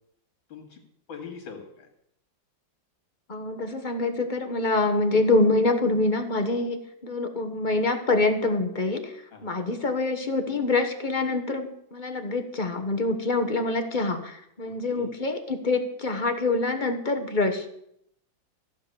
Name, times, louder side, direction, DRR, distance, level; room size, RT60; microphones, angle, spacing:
voice 1, 0.5-0.8 1.1-1.9 9.3-9.5 14.6-15.0, left 6 dB, 80° left, 5 dB, 3.0 m, -42 dB
voice 2, 3.3-17.7, left 2 dB, 30° left, 6 dB, 1.0 m, -25 dB
14.5 x 7.6 x 6.8 m, 0.73 s
omnidirectional pair, 2.1 m